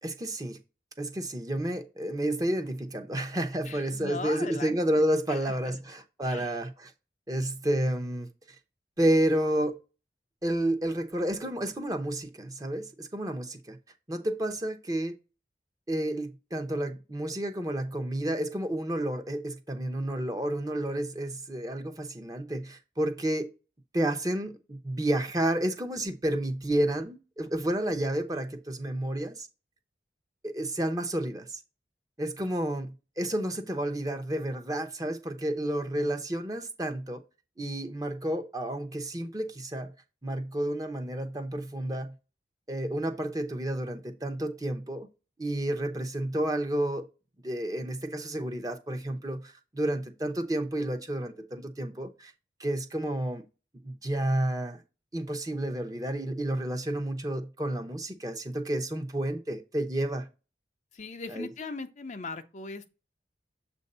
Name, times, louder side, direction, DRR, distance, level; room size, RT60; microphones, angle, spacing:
voice 1, 0.0-0.6 1.0-6.9 7.3-8.3 9.0-9.8 10.4-13.8 14.1-15.1 15.9-23.5 23.9-29.5 30.4-31.6 32.2-37.2 37.6-39.9 40.2-42.1 42.7-45.1 45.4-47.1 47.4-52.3 52.6-53.4 53.8-54.8 55.1-60.3 61.3-61.5, right 1 dB, 20° right, 0.8 m, -30 dB
voice 2, 3.6-5.8 6.2-6.5 60.9-62.9, left 3 dB, 40° left, 0.6 m, -39 dB
7.4 x 2.7 x 5.3 m
head